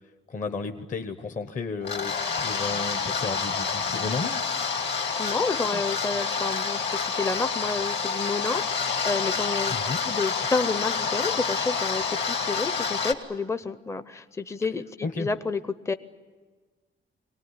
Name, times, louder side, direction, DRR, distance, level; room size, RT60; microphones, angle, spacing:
voice 1, 0.3-4.4 5.7-5.8 9.7-10.0 12.5-12.7 15.0-15.3, left 4 dB, 40° left, 6 dB, 1.0 m, -33 dB
sound 1, 1.8-13.1, left 5 dB, 55° left, 2.1 m, -28 dB
voice 2, 5.2-9.7 10.1-15.6 15.9-16.0, left 4 dB, 15° left, 11 dB, 0.6 m, -30 dB
24.0 x 19.0 x 9.7 m, 1.4 s
wide cardioid pair, 145°, 21 cm